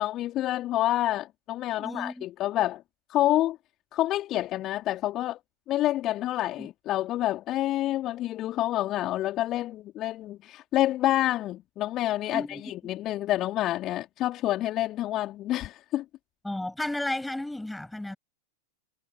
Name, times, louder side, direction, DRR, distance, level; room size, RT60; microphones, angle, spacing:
voice 1, 0.0-2.8 3.1-3.6 3.9-5.4 5.7-16.0, left 14 dB, 35° left, 2.7 m, -28 dB
voice 2, 1.7-2.2 6.6-6.7 12.3-12.9 16.4-18.2, left 1 dB, 5° left, 7.5 m, -33 dB
figure-of-eight pair, 90°, 0 cm